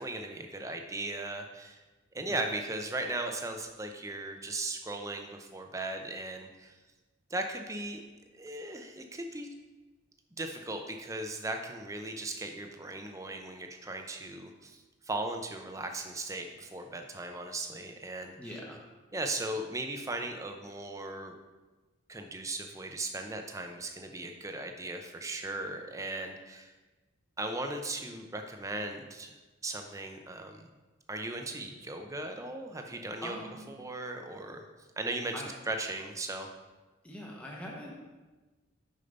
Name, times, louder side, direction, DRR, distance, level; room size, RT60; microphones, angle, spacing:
voice 1, 0.0-1.8 2.1-6.7 7.3-8.0 8.3-9.5 10.4-18.6 19.1-21.3 22.1-26.7 27.4-29.3 29.6-30.7 31.1-33.4 33.7-34.6 35.0-35.3 35.7-36.5, right 2 dB, 15° right, 4 dB, 0.6 m, -37 dB
voice 2, 18.4-18.8 33.2-33.7 35.3-35.5 37.0-38.1, left 1 dB, 5° left, -3 dB, 1.0 m, -43 dB
6.7 x 5.5 x 5.2 m, 1.2 s
head